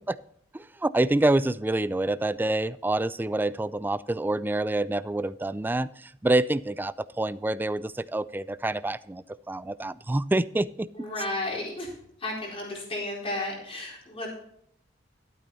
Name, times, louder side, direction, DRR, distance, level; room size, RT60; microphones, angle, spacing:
voice 1, 0.5-10.9, right 2 dB, 10° right, 17 dB, 0.3 m, -27 dB
voice 2, 10.9-11.9 12.2-14.3, left 2 dB, 30° left, -2 dB, 4.1 m, -33 dB
12.5 x 8.8 x 4.1 m, 0.69 s
head